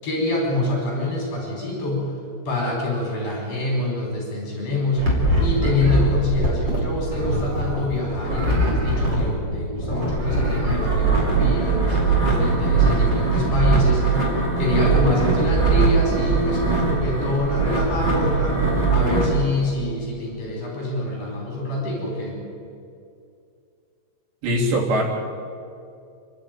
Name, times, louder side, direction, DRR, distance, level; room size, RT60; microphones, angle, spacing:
voice 1, 0.0-2.1 2.5-5.0 5.4-14.1 14.6-18.6 18.9-22.4, left 2 dB, 35° left, -2 dB, 5.6 m, -26 dB
sound 1, 5.0-19.3, right 3 dB, 25° right, 4.5 m, -21 dB
voice 2, 24.4-25.0, equal, 80° right, -2 dB, 5.5 m, -21 dB
29.0 x 11.5 x 9.3 m, 2.5 s
omnidirectional pair, 4.9 m